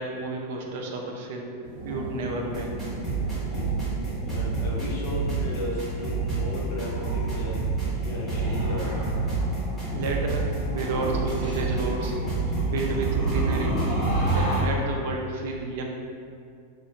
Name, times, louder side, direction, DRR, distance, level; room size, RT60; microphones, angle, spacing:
voice 1, 0.0-1.5 1.8-2.7 9.9-12.2 12.7-13.8 14.3-15.8, right 3 dB, 55° right, 1 dB, 0.3 m, -31 dB
sound 1, 1.6-14.6, right 1 dB, 30° right, 0.8 m, -31 dB
sound 2, 2.5-14.6, right 4 dB, 5° left, 0.7 m, -29 dB
voice 2, 4.3-7.6 8.0-8.9, left 1 dB, 45° left, -4 dB, 0.6 m, -35 dB
2.5 x 2.1 x 2.7 m, 2.3 s
supercardioid pair, 165°, 0 cm